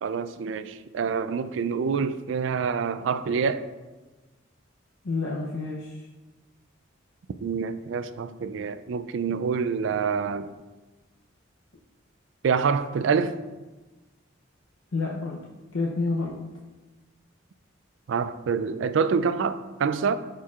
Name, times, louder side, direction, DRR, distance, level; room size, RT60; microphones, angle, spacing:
voice 1, 0.0-3.7 7.4-10.5 12.4-13.4 18.1-20.1, right 5 dB, 65° right, 0.3 m, -26 dB
voice 2, 5.0-6.1 14.9-15.4 15.7-16.4, left 3 dB, 85° left, 0.7 m, -29 dB
11.5 x 4.4 x 2.4 m
head